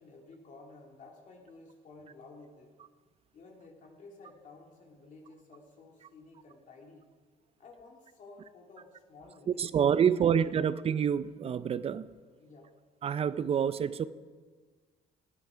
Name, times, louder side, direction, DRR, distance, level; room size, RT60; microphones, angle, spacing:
voice 1, 0.0-2.7 3.3-7.1 7.6-10.4 12.4-12.7, left 3 dB, 50° left, 2.4 m, -53 dB
voice 2, 9.5-12.1 13.0-14.1, right 8 dB, 35° right, 0.5 m, -27 dB
15.5 x 9.6 x 5.0 m
cardioid pair, 110°, 17 cm